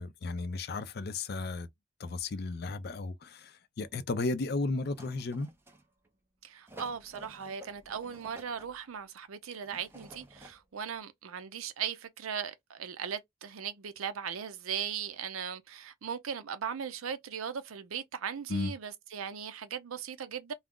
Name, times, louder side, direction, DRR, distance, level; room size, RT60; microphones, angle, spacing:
voice 1, 0.0-1.7 2.0-5.5 18.5-18.7, left 3 dB, 50° left, 0.4 m, -34 dB
sound 1, 4.9-6.1 6.7-8.8 9.6-10.6 11.0-11.1, right 2 dB, 10° right, 0.5 m, -52 dB
voice 2, 6.4-20.5, right 7 dB, 85° right, 0.5 m, -38 dB
2.3 x 2.0 x 3.5 m
head